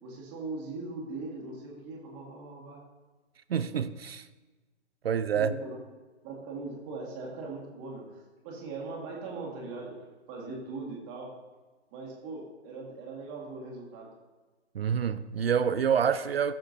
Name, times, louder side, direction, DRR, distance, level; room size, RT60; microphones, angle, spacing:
voice 1, 0.0-2.8 5.3-5.8 6.2-10.0 10.3-11.3 11.9-14.1, right 3 dB, 25° right, 1.8 m, -40 dB
voice 2, 3.5-4.2 5.0-5.5 14.7-16.5, right 7 dB, 55° right, 0.5 m, -27 dB
14.5 x 6.4 x 2.7 m
figure-of-eight pair, 135°, 35 cm